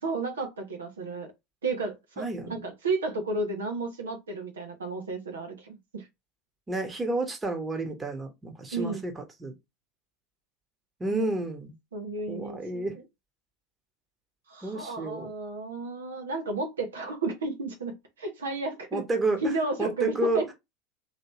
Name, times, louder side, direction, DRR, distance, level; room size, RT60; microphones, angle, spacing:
voice 1, 0.0-1.3 1.6-6.1 8.7-9.0 11.1-11.2 11.9-13.0 14.5-19.0 19.4-20.5, right 3 dB, 80° right, 0.9 m, -32 dB
voice 2, 2.2-2.6 6.7-9.5 11.0-11.7 12.3-13.0 14.6-15.3 18.9-19.5 19.8-20.4, right 2 dB, 15° right, 1.2 m, -30 dB
3.1 x 2.9 x 3.0 m
figure-of-eight pair, 75°, 0 cm